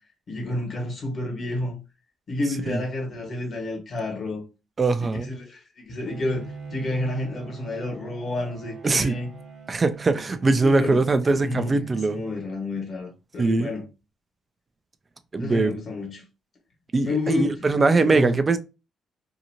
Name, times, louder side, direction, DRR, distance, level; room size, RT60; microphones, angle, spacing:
voice 1, 0.3-1.7 2.3-4.4 5.0-9.3 10.6-11.0 11.3-11.8 12.1-13.8 15.4-16.2 17.0-18.4, left 2 dB, 50° left, 1.4 m, -30 dB
voice 2, 4.8-5.4 8.8-9.1 9.7-12.2 13.4-13.7 15.3-15.7 16.9-18.6, right 3 dB, 30° right, 0.4 m, -21 dB
Bowed string instrument, 6.1-12.7, right 4 dB, 65° right, 0.8 m, -41 dB
2.8 x 2.5 x 2.8 m
cardioid pair, 90°, 0 cm